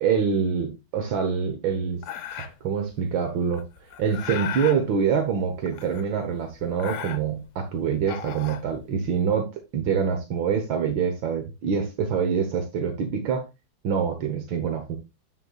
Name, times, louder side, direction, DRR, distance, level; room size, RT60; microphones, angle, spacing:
voice 1, 0.0-2.0 2.4-3.6 4.0-9.5 9.7-13.4 13.8-15.0, right 6 dB, 75° right, 5 dB, 1.9 m, -25 dB
sound 1, 2.0-2.7 3.5-4.8 5.7-6.3 6.6-7.5 8.0-9.2, left 9 dB, 65° left, 1.3 m, -36 dB
9.4 x 7.0 x 2.4 m, 0.23 s
omnidirectional pair, 2.2 m